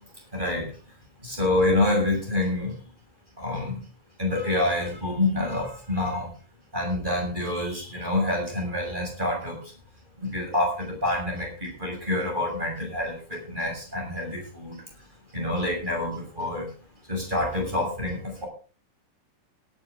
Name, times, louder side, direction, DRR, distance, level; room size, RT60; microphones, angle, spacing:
voice 1, 0.3-0.7 1.2-2.8 3.4-3.8 4.2-6.3 6.7-9.6 10.2-14.8 15.3-16.7 17.1-18.5, left 2 dB, 10° right, 0 dB, 6.7 m, -27 dB
18.0 x 11.5 x 3.8 m, 0.38 s
omnidirectional pair, 5.6 m